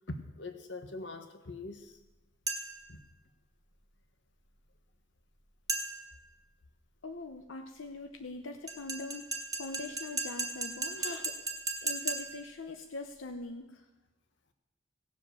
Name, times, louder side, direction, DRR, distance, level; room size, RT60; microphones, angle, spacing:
voice 1, 0.1-2.0 2.9-3.0 11.0-11.2, left 2 dB, 65° left, 7 dB, 1.4 m, -43 dB
sound 1, 2.5-2.9 5.7-6.2 8.7-12.5, right 3 dB, 20° right, 1.5 m, -36 dB
voice 2, 7.0-11.4 11.8-13.9, left 2 dB, 85° left, 6 dB, 0.8 m, -42 dB
17.0 x 7.8 x 6.8 m, 1.0 s
head